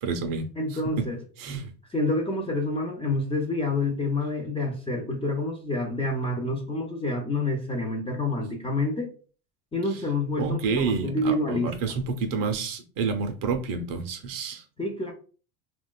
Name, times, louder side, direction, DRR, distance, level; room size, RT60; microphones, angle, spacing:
voice 1, 0.0-1.1 1.4-1.7 10.4-14.6, right 5 dB, 45° right, 0.6 m, -29 dB
voice 2, 0.6-1.2 1.9-9.1 9.7-11.7 14.8-15.1, left 2 dB, 15° left, 0.4 m, -28 dB
2.9 x 2.2 x 2.2 m
hypercardioid pair, 85°, 47 cm